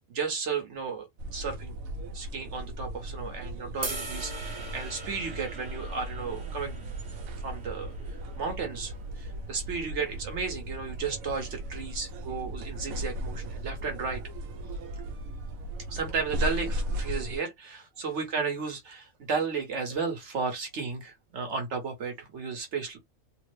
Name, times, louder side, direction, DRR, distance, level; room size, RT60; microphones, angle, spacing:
voice 1, 0.1-1.8 2.1-7.9 8.4-14.2 15.9-23.0, right 5 dB, 60° right, 1.2 m, -34 dB
sound 1, 1.2-17.4, equal, 85° right, 1.1 m, -37 dB
sound 2, 3.8-10.1, right 2 dB, 25° right, 0.7 m, -42 dB
3.3 x 2.1 x 3.1 m
omnidirectional pair, 1.4 m